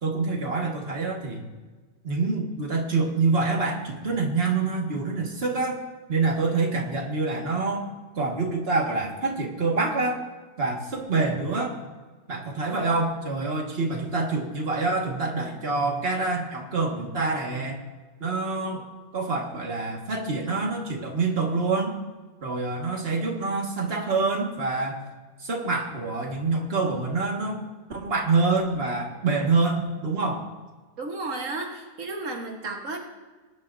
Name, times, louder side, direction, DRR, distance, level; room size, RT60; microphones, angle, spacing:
voice 1, 0.0-1.4 2.0-5.8 6.1-7.9 8.2-10.2 10.6-11.7 12.3-17.8 18.2-18.8 19.1-22.0 22.4-25.0 25.4-27.6 27.9-30.4, right 3 dB, 50° right, 0 dB, 2.0 m, -26 dB
voice 2, 31.0-33.0, right 2 dB, 90° right, 1 dB, 1.8 m, -33 dB
20.0 x 10.5 x 2.7 m, 1.3 s
omnidirectional pair, 1.3 m